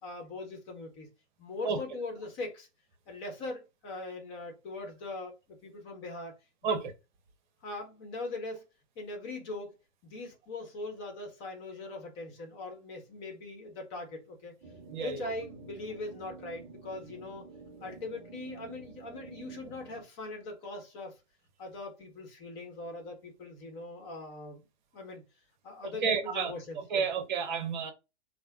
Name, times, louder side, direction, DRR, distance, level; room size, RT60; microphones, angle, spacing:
voice 1, 0.0-1.1 1.4-2.7 3.1-6.3 6.6-6.8 7.6-8.7 9.0-9.7 10.0-14.6 14.9-17.4 17.8-21.2 21.6-24.7 24.9-25.2 25.6-27.1, left 2 dB, 30° left, 1.0 m, -41 dB
sound 1, 14.6-20.1, right 5 dB, 15° right, 0.4 m, -49 dB
voice 2, 14.9-15.3 17.8-17.9 26.0-27.9, right 5 dB, 40° right, 0.8 m, -31 dB
3.3 x 2.1 x 3.4 m
figure-of-eight pair, 115°, 35 cm